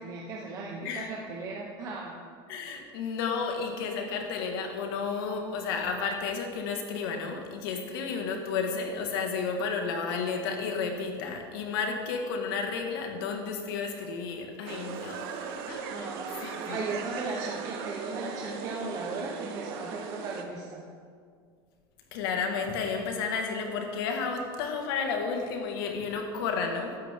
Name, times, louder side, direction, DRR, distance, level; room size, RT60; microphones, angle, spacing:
voice 1, 0.0-2.2 15.9-20.8, right 3 dB, 30° right, -2 dB, 1.1 m, -37 dB
voice 2, 2.5-15.3 15.7-16.8 22.1-27.0, left 5 dB, 80° left, 3 dB, 2.0 m, -32 dB
sound 1, 14.7-20.4, right 6 dB, 80° right, 1.4 m, -38 dB
15.0 x 12.5 x 3.8 m, 2.1 s
cardioid pair, 165°, 12 cm